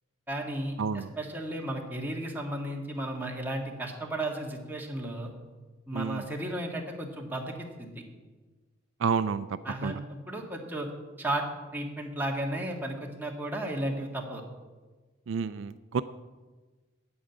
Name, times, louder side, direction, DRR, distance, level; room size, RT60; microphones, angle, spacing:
voice 1, 0.3-5.3 5.9-8.0 9.6-10.9 11.2-11.4 11.7-14.4, right 1 dB, 10° right, 0 dB, 1.6 m, -34 dB
voice 2, 0.8-1.1 5.9-6.2 9.0-9.5 9.8-10.0 15.3-16.0, right 6 dB, 75° right, 14 dB, 0.4 m, -29 dB
8.8 x 8.8 x 8.2 m, 1.3 s
head